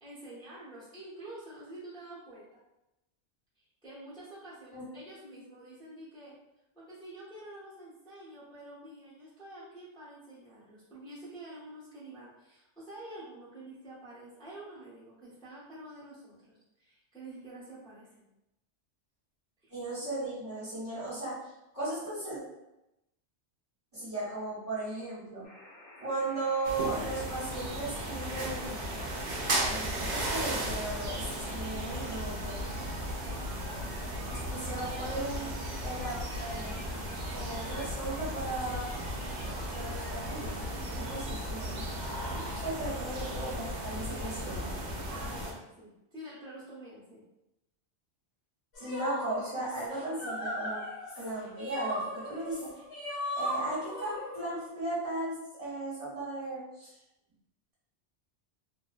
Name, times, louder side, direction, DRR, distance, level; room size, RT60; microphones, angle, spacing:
voice 1, 0.0-2.6 3.6-6.3 6.7-18.3 19.6-19.7 34.2-34.7 42.3-42.5 45.1-47.2, right 1 dB, 5° left, -9 dB, 0.7 m, -48 dB
voice 2, 19.7-22.4 23.9-25.5 26.0-28.9 29.6-32.6 34.5-35.5 35.8-36.8 37.3-38.9 39.7-40.6 40.9-41.9 42.6-44.7 48.8-50.8 51.1-52.7 53.4-56.9, right 2 dB, 30° right, -10 dB, 1.0 m, -36 dB
sound 1, 25.4-40.4, left 1 dB, 90° left, 1.1 m, -52 dB
sound 2, 26.6-45.5, right 1 dB, 55° right, 0.5 m, -35 dB
sound 3, 48.7-54.7, equal, 70° left, 1.0 m, -37 dB
2.6 x 2.1 x 2.3 m, 0.91 s
omnidirectional pair, 1.2 m